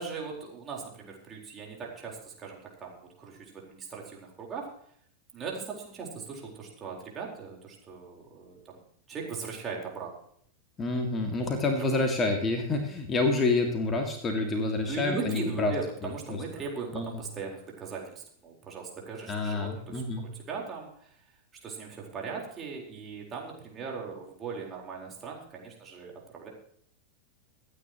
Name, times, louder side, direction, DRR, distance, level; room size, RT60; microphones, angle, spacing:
voice 1, 0.0-4.7 5.3-8.8 9.1-10.1 11.8-12.0 14.9-20.0 20.3-21.2 21.6-26.5, right 5 dB, 25° right, -1 dB, 4.3 m, -39 dB
voice 2, 10.8-15.7 16.3-16.4 16.9-17.1 19.3-20.2, left 3 dB, 20° left, 4 dB, 2.2 m, -28 dB
26.0 x 9.7 x 3.1 m, 0.64 s
figure-of-eight pair, 90°, 0 cm